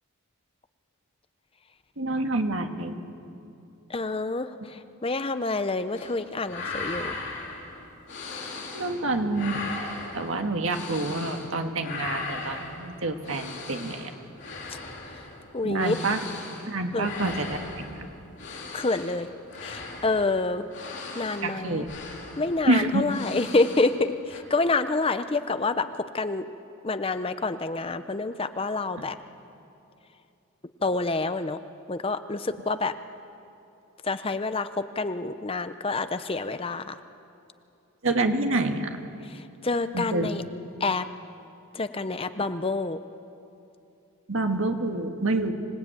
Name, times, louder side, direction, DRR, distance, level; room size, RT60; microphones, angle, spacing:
voice 1, 2.0-2.9 8.7-9.6 10.1-14.1 15.6-16.2 16.7-17.9 21.4-21.9 22.7-23.0 29.0-29.1 38.0-39.0 39.9-40.3 44.3-45.5, right 2 dB, 60° right, 5 dB, 1.7 m, -27 dB
voice 2, 3.9-7.1 15.5-16.1 16.9-17.1 18.7-19.3 19.6-20.7 21.1-21.9 22.4-26.4 26.8-29.2 30.8-31.6 31.9-32.9 34.0-37.0 39.3-40.4 40.8-41.1 41.7-43.0, left 3 dB, 25° left, 11 dB, 0.6 m, -27 dB
sound 1, 5.9-6.2 6.4-9.0 9.3-11.5 11.8-24.0 24.3-24.4, left 3 dB, 55° left, 4.1 m, -38 dB
25.5 x 18.5 x 9.0 m, 2.7 s
head